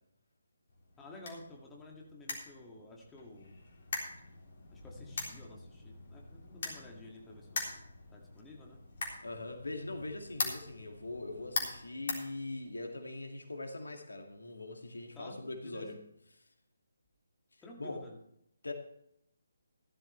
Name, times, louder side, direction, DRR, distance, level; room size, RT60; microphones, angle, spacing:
sound 1, 0.7-13.0, left 3 dB, 45° left, 3.7 m, -42 dB
voice 1, 1.0-3.6 4.7-7.8 8.1-8.8 15.1-15.9 17.6-18.2, left 2 dB, 10° left, -2 dB, 2.1 m, -52 dB
voice 2, 9.2-16.0 16.3-16.4 17.8-18.0 18.6-18.7, left 2 dB, 75° left, 4 dB, 2.3 m, -42 dB
15.0 x 12.5 x 3.3 m, 0.75 s
figure-of-eight pair, 145°, 0 cm